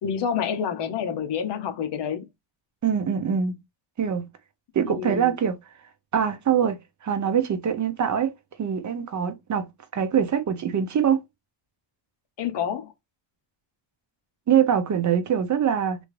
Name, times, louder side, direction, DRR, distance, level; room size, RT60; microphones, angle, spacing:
voice 1, 0.0-2.2 4.8-5.3 12.4-12.9, left 7 dB, 60° left, 0.8 m, -28 dB
voice 2, 2.8-3.6 4.0-4.3 4.7-5.6 6.1-8.3 8.6-11.2 14.5-16.0, right 8 dB, 40° right, 0.7 m, -23 dB
3.4 x 2.6 x 3.1 m
cardioid pair, 150°, 47 cm